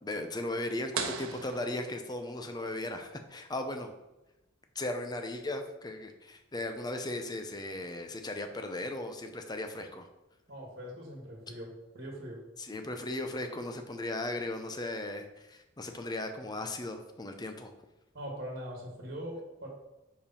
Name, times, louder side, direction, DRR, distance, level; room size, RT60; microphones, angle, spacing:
voice 1, 0.0-3.9 4.7-10.1 12.6-17.7, left 1 dB, 20° left, 6 dB, 0.6 m, -37 dB
sound 1, 0.9-2.6, right 5 dB, 90° right, 0.9 m, -39 dB
voice 2, 10.5-12.4 18.1-19.7, equal, 45° right, 0 dB, 1.7 m, -42 dB
5.1 x 4.9 x 5.5 m, 0.97 s
head